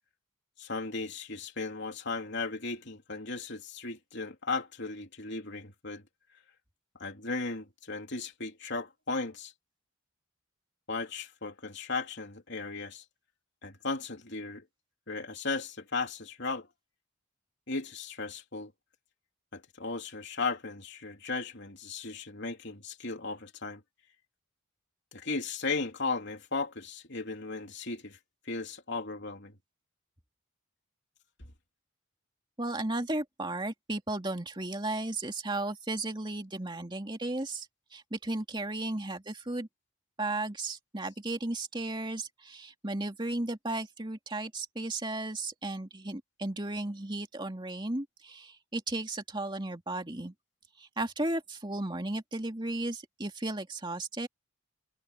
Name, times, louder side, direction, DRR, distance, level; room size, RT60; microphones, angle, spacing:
voice 1, 0.6-6.0 7.0-9.5 10.9-13.0 13.6-14.6 15.1-16.7 17.7-18.7 19.5-23.8 25.1-28.2 28.5-29.5, left 3 dB, 55° left, 3.5 m, -36 dB
voice 2, 32.6-37.7 37.9-39.7 40.2-50.3 50.8-54.3, right 2 dB, 20° right, 2.6 m, -35 dB
head